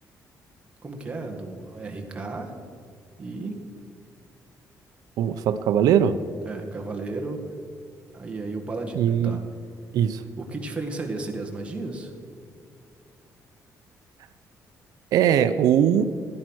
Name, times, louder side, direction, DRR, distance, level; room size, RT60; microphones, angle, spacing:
voice 1, 0.8-2.5 3.2-3.6 6.4-7.4 8.1-9.4 10.4-12.1, right 3 dB, 20° right, 2 dB, 1.8 m, -33 dB
voice 2, 5.2-6.2 9.0-9.3 9.9-10.2 15.1-16.0, right 9 dB, 85° right, 10 dB, 0.6 m, -20 dB
15.5 x 10.5 x 6.3 m, 2.3 s
cardioid pair, 160°, 6 cm